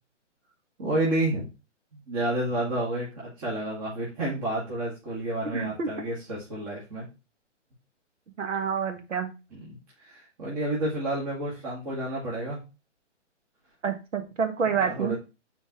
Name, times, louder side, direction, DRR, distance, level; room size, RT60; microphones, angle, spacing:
voice 1, 0.8-1.4 1.9-7.1 9.5-9.7 10.0-12.6 14.7-15.2, right 1 dB, 30° right, -6 dB, 2.3 m, -30 dB
voice 2, 5.5-5.9 8.4-9.3 13.8-15.2, right 6 dB, 80° right, 6 dB, 1.7 m, -28 dB
7.2 x 4.4 x 3.1 m, 0.28 s
hypercardioid pair, 155°, 37 cm